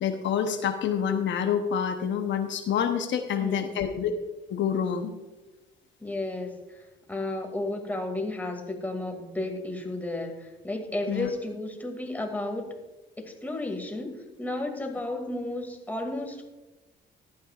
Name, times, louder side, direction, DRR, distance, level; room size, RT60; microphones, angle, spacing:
voice 1, 0.0-4.1 4.5-5.1 11.1-11.3, left 8 dB, 70° left, 6 dB, 0.9 m, -27 dB
voice 2, 3.4-3.8 6.0-12.7 13.2-16.5, left 2 dB, 10° left, 2 dB, 2.3 m, -33 dB
15.0 x 11.5 x 2.4 m, 1.1 s
cardioid pair, 90°, 20 cm